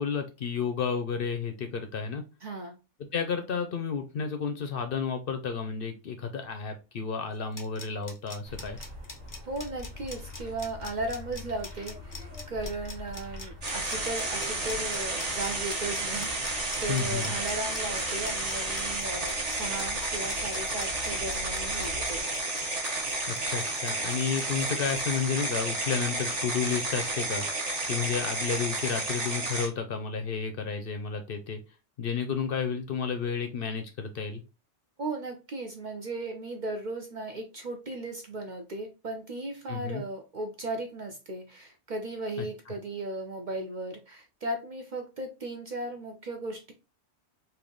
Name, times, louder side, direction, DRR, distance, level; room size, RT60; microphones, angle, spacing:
voice 1, 0.0-2.2 3.1-8.8 16.9-17.4 23.3-27.4 27.9-31.6 32.0-34.4 39.7-40.0 42.4-42.5, left 6 dB, 60° left, 6 dB, 0.7 m, -31 dB
voice 2, 2.4-2.7 9.5-22.3 35.0-46.7, right 2 dB, 50° right, 4 dB, 0.6 m, -36 dB
sound 1, 7.3-25.2, left 3 dB, 30° left, 0.4 m, -44 dB
sound 2, 8.4-22.2, left 1 dB, 75° right, 1.5 m, -44 dB
sound 3, 13.6-29.7, right 2 dB, 35° right, 1.0 m, -31 dB
3.4 x 2.6 x 3.7 m, 0.29 s
omnidirectional pair, 1.2 m